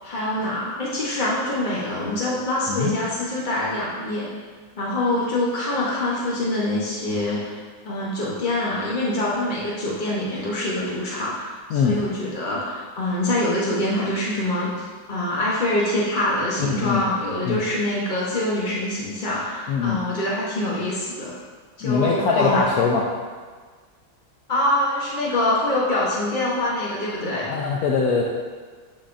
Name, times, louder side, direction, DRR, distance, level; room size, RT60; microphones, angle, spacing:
voice 1, 0.0-4.3 4.8-7.5 7.8-21.3 21.8-22.6 24.5-27.6, left 1 dB, 50° left, -6 dB, 0.5 m, -25 dB
voice 2, 16.6-17.0 17.4-17.6 19.7-20.0 21.8-23.1 27.5-28.2, left 5 dB, 75° left, -2 dB, 0.8 m, -22 dB
12.0 x 4.1 x 2.5 m, 1.5 s
omnidirectional pair, 2.2 m